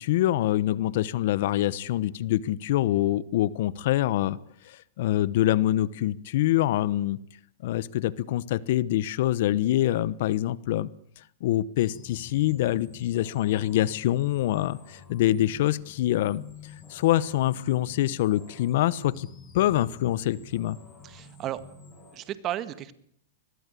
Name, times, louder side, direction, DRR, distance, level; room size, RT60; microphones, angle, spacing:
voice 1, 0.0-4.4 4.7-7.2 7.6-10.9 11.4-16.4 16.9-19.3 19.5-20.8, left 14 dB, 60° left, 21 dB, 1.0 m, -25 dB
sound 1, 11.8-22.2, left 5 dB, 20° left, 7.0 m, -48 dB
voice 2, 21.0-21.6 22.1-22.9, right 12 dB, 30° right, 14 dB, 1.8 m, -33 dB
23.5 x 21.0 x 8.4 m, 0.65 s
hypercardioid pair, 145°, 0 cm